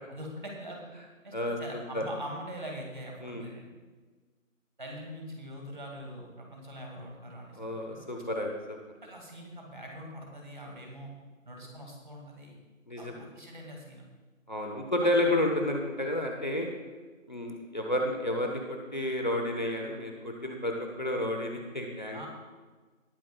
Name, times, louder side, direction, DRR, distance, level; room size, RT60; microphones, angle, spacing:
voice 1, 0.1-0.9 1.2-3.7 4.8-8.0 9.0-11.1 11.4-12.6 13.0-14.1 15.2-15.4 22.1-22.3, equal, 35° right, 0 dB, 2.2 m, -43 dB
voice 2, 7.6-8.8 12.9-13.2 14.5-16.7 17.3-22.3, left 1 dB, 35° left, 1 dB, 1.1 m, -31 dB
19.5 x 9.4 x 2.3 m, 1.4 s
figure-of-eight pair, 170°, 41 cm